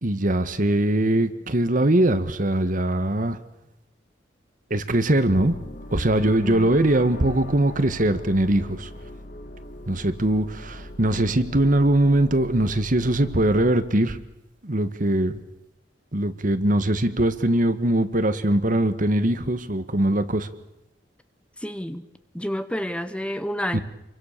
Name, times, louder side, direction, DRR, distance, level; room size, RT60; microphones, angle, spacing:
voice 1, 0.0-3.4 4.7-5.6 5.9-8.9 9.9-14.2 14.6-15.4 16.1-20.5 23.7-23.8, right 1 dB, 50° right, 11 dB, 1.6 m, -21 dB
sound 1, 5.2-13.7, left 1 dB, 50° left, 1.8 m, -40 dB
voice 2, 6.4-6.8 21.6-22.1 22.3-23.8, equal, 5° left, 11 dB, 0.9 m, -29 dB
28.0 x 23.5 x 6.8 m, 0.91 s
head